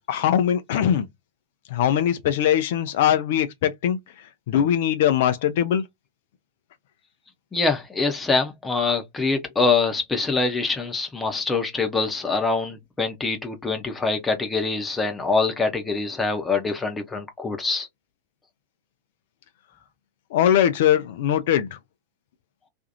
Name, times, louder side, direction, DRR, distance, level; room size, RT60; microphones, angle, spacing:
voice 1, 0.1-1.1 1.7-4.0 4.5-5.8 20.3-21.7, left 10 dB, 55° left, 0.5 m, -21 dB
voice 2, 7.5-17.9, left 4 dB, 10° left, 0.8 m, -24 dB
2.6 x 2.4 x 2.7 m
figure-of-eight pair, 90°, 0 cm